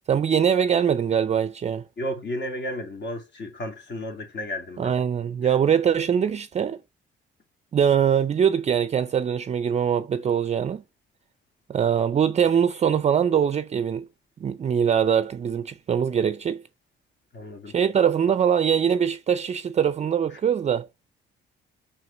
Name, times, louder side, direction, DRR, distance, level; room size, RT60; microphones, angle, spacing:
voice 1, 0.1-1.8 4.8-6.8 7.7-10.8 11.7-14.1 14.4-16.6 17.7-20.9, right 8 dB, 35° right, 0.4 m, -22 dB
voice 2, 2.0-4.9 5.4-5.5 17.3-17.7, equal, 60° left, 2.5 m, -33 dB
5.6 x 4.9 x 4.4 m
cardioid pair, 90°, 20 cm